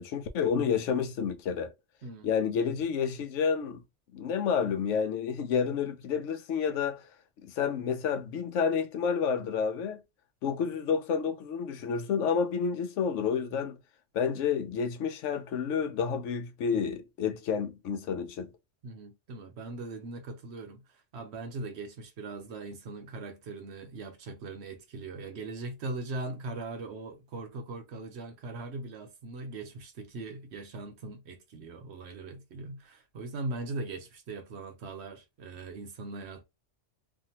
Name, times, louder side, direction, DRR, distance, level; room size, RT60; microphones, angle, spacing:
voice 1, 0.0-1.7 2.2-3.8 4.1-7.0 7.4-10.0 10.4-13.8 14.1-18.5, left 6 dB, 85° left, 1.0 m, -29 dB
voice 2, 18.8-36.4, right 3 dB, 65° right, 1.0 m, -40 dB
2.6 x 2.5 x 2.8 m
omnidirectional pair, 1.2 m